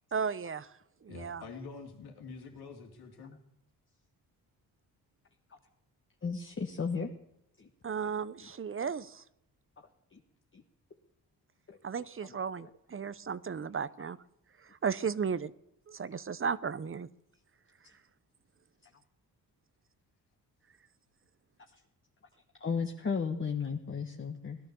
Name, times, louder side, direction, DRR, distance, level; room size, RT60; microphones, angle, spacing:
voice 1, 0.1-0.7 1.0-1.4 7.8-9.2 11.8-14.2 14.8-15.5 15.9-17.1, right 6 dB, 35° right, 17 dB, 0.8 m, -34 dB
voice 2, 1.1-3.4, left 4 dB, 80° left, 3 dB, 3.1 m, -46 dB
voice 3, 6.2-7.1 7.6-7.7 8.0-8.1 8.4-8.5 10.1-10.2 10.5-10.6 11.7-11.8 12.3-12.7 22.6-24.6, left 5 dB, 30° left, 3 dB, 1.5 m, -35 dB
17.5 x 12.0 x 6.9 m, 0.79 s
cardioid pair, 80°, 38 cm